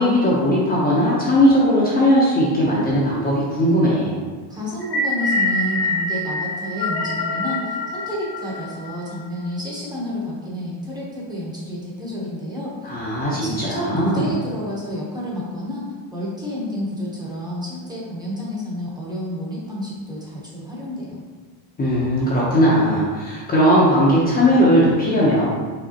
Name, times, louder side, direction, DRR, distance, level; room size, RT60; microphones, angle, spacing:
voice 1, 0.0-4.2 12.8-14.3 21.8-25.5, equal, 20° left, -7 dB, 0.7 m, -18 dB
voice 2, 4.5-12.7 13.4-21.2, equal, 10° right, -6 dB, 0.9 m, -30 dB
metal resounded, 4.8-9.1, left 2 dB, 65° left, 1.0 m, -25 dB
5.0 x 3.5 x 2.8 m, 1.5 s
cardioid pair, 160°, 42 cm